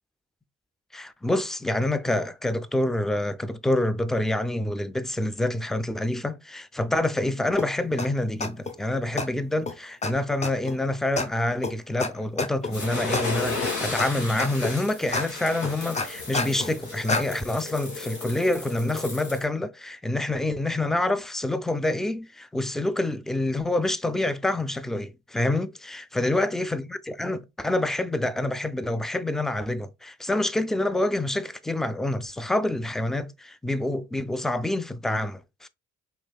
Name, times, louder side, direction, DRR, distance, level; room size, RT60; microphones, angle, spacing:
voice 1, 0.9-35.7, left 1 dB, ahead, 0.3 m, -27 dB
sound 1, 7.6-7.7 8.0-8.1 8.4-8.7 9.2-9.3 9.7-9.8 10.0-10.1 10.4-10.7 11.2-11.3 11.6-11.7 12.0-12.1 12.4-12.7 13.1-13.2 13.6-14.1 14.4-14.7 15.1-15.2 15.6-16.7 17.1-17.2, left 3 dB, 20° left, 0.7 m, -27 dB
sound 2, 12.7-19.5, left 3 dB, 75° left, 2.2 m, -34 dB
5.1 x 3.5 x 2.3 m
cardioid pair, 90°, 30 cm